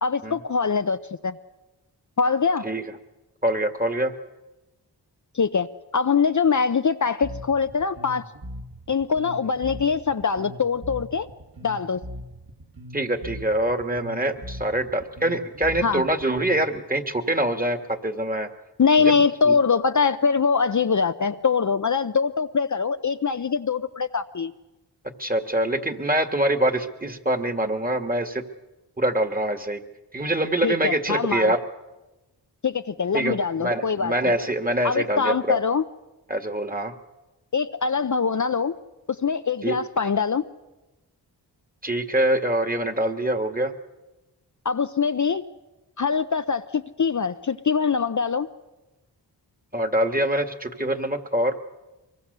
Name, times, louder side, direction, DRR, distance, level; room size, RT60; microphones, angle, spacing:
voice 1, 0.0-1.4 2.2-2.7 5.3-5.7 5.9-8.2 8.9-11.3 11.6-12.0 15.8-16.0 18.8-24.5 30.6-31.5 32.6-34.1 34.8-35.8 37.5-38.8 39.1-40.4 44.6-45.4 46.0-48.5, left 5 dB, 45° left, 9 dB, 0.7 m, -23 dB
voice 2, 3.4-4.1 12.9-18.5 19.0-19.2 19.5-19.6 25.2-28.4 29.0-29.8 30.1-31.6 33.1-35.6 36.3-36.9 39.6-39.8 41.8-43.7 49.7-51.5, right 1 dB, 20° right, 8 dB, 1.9 m, -24 dB
Bass guitar, 7.2-16.8, equal, 55° right, 2.4 m, -40 dB
23.5 x 22.0 x 6.8 m, 1.1 s
cardioid pair, 45°, 43 cm